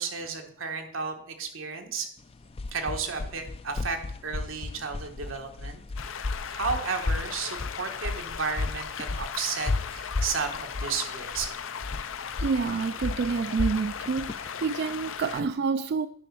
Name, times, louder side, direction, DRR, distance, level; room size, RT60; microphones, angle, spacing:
voice 1, 0.0-2.1 2.7-11.5, right 5 dB, 90° right, 4 dB, 1.5 m, -33 dB
sound 1, 2.2-15.5, left 3 dB, 30° left, 0.3 m, -34 dB
sound 2, 6.0-15.4, left 7 dB, 85° left, 0.6 m, -37 dB
voice 2, 12.4-16.1, right 5 dB, 55° right, 12 dB, 0.3 m, -28 dB
9.9 x 5.3 x 5.9 m, 0.63 s
head